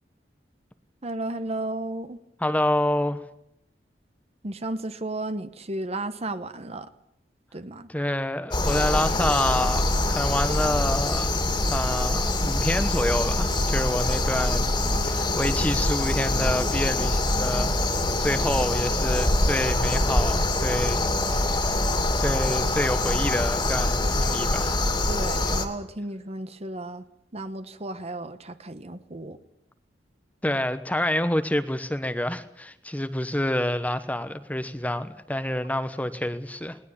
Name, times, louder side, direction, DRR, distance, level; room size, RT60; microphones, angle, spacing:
voice 1, 1.0-2.2 4.4-6.9 7.5-7.9 25.1-27.0 27.3-29.4, right 2 dB, 35° right, 1.2 m, -33 dB
voice 2, 2.4-3.2 7.9-11.4 11.7-14.7 15.0-17.8 18.2-21.1 21.3-21.6 22.2-24.8 30.4-36.8, left 1 dB, 10° left, 1.0 m, -27 dB
sound 1, 8.5-25.7, left 2 dB, 30° left, 2.6 m, -24 dB
20.0 x 19.5 x 8.6 m
head